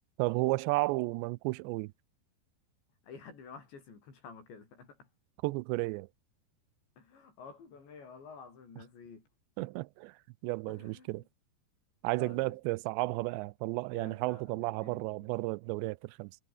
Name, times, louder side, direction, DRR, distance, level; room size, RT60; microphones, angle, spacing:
voice 1, 0.2-1.9 5.4-6.1 9.6-10.2 10.4-11.2 12.0-16.4, right 23 dB, 90° right, 2.9 m, -33 dB
voice 2, 3.0-5.1 7.0-9.3 10.7-11.3 12.2-12.6 13.9-15.1, left 5 dB, 90° left, 8.9 m, -51 dB
omnidirectional pair, 5.0 m